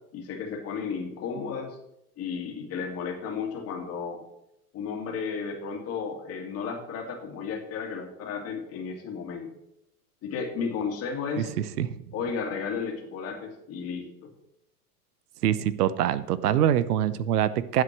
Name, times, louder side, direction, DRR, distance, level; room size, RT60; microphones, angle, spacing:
voice 1, 0.1-1.8 2.2-4.2 4.7-9.5 10.2-11.5 12.1-14.3, left 5 dB, 30° left, 3 dB, 2.3 m, -33 dB
voice 2, 11.4-12.0 15.4-17.8, right 10 dB, 80° right, 16 dB, 0.9 m, -25 dB
9.7 x 7.9 x 5.9 m, 0.84 s
supercardioid pair, 135°, 46 cm